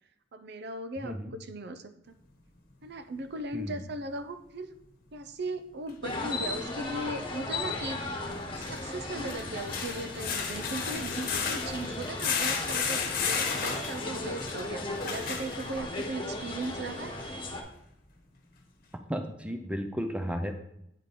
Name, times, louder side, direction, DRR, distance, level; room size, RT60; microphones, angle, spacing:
voice 1, 0.3-1.9 2.8-4.7 5.1-8.3 8.6-17.2, right 2 dB, 60° right, 9 dB, 0.6 m, -38 dB
voice 2, 1.0-1.3 3.5-3.8 19.1-20.5, equal, 5° right, 6 dB, 0.6 m, -33 dB
sound 1, 5.9-6.0 8.4-16.0 16.6-16.7 17.2-17.3, left 6 dB, 50° left, 1.1 m, -33 dB
sound 2, 6.0-17.6, left 2 dB, 30° left, 1.4 m, -36 dB
9.3 x 5.1 x 4.2 m, 0.77 s
head